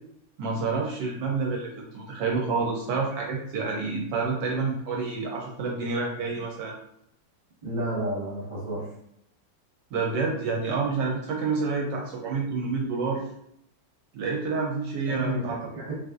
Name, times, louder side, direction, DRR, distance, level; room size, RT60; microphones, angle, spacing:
voice 1, 0.4-6.7 9.9-13.2 14.1-15.6, right 4 dB, 75° right, -1 dB, 1.1 m, -28 dB
voice 2, 7.6-8.9 15.1-15.9, right 1 dB, 30° right, -4 dB, 1.0 m, -31 dB
3.9 x 2.4 x 2.4 m, 0.75 s
omnidirectional pair, 2.0 m